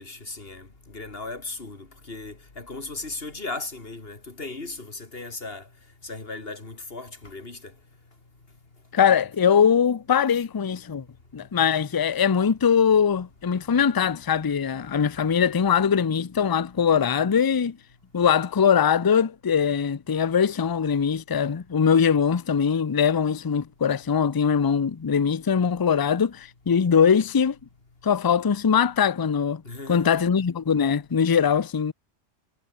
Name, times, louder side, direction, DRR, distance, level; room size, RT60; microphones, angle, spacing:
voice 1, 0.0-5.7 6.0-7.7 29.6-30.1, left 3 dB, 55° left, 3.2 m, -37 dB
voice 2, 8.9-11.0 11.3-17.8 18.1-27.6 28.0-29.6 29.9-31.9, left 7 dB, 35° left, 0.4 m, -21 dB
omnidirectional pair, 1.2 m